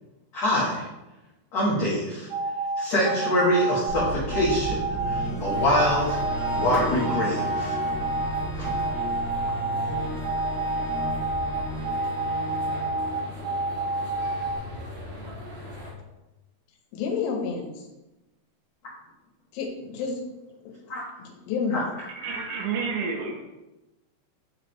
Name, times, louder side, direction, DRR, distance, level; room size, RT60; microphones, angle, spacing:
voice 1, 0.3-0.9 1.5-2.3 2.8-7.8 8.7-8.8 20.9-21.0 21.7-21.8 22.2-22.6, left 1 dB, 65° left, -8 dB, 1.6 m, -25 dB
sound 1, 2.3-14.6, right 3 dB, 60° right, 1.9 m, -28 dB
sound 2, 3.9-14.0, right 1 dB, 25° left, 2.2 m, -34 dB
sound 3, 5.5-15.9, left 1 dB, 40° right, 2.3 m, -39 dB
voice 2, 16.9-17.9 19.5-20.2 21.2-21.9, left 5 dB, 85° left, 1 dB, 3.6 m, -29 dB
voice 3, 22.1-23.4, right 5 dB, 75° right, 2 dB, 2.9 m, -30 dB
9.9 x 4.9 x 3.2 m, 1.0 s
omnidirectional pair, 5.5 m